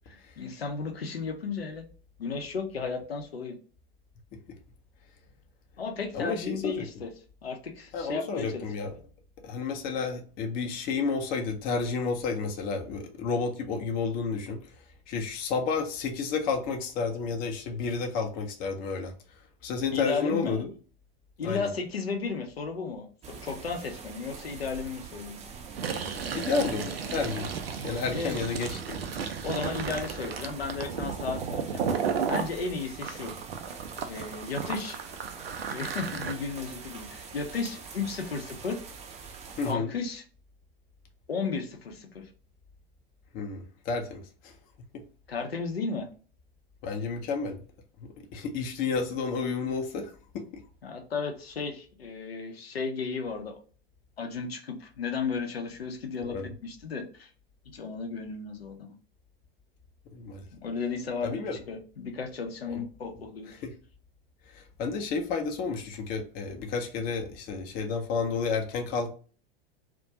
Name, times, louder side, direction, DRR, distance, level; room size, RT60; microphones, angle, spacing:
voice 1, 0.1-1.9 2.2-3.6 5.8-7.1 7.4-8.6 19.9-20.6 21.4-25.4 28.1-28.4 29.4-31.9 32.3-33.3 34.0-35.0 35.7-38.8 39.6-40.2 41.3-42.3 45.3-46.1 50.8-53.6 54.2-57.3 57.7-59.0 60.5-63.5, left 5 dB, 80° left, 0.6 m, -34 dB
voice 2, 6.1-6.9 7.9-9.0 9.4-14.6 15.1-19.1 19.6-20.7 21.4-21.7 26.3-27.5 27.8-29.0 39.6-39.9 43.3-44.5 46.8-47.6 48.0-50.4 56.2-56.5 60.1-60.4 61.2-61.6 62.7-62.8 63.6-63.7 64.5-69.1, left 4 dB, 30° left, 0.5 m, -31 dB
sound 1, 23.2-39.7, right 6 dB, 25° right, 0.5 m, -43 dB
Fill (with liquid), 25.7-32.5 33.0-36.3, right 6 dB, 75° right, 0.5 m, -34 dB
2.4 x 2.1 x 2.7 m
figure-of-eight pair, 85°, 30 cm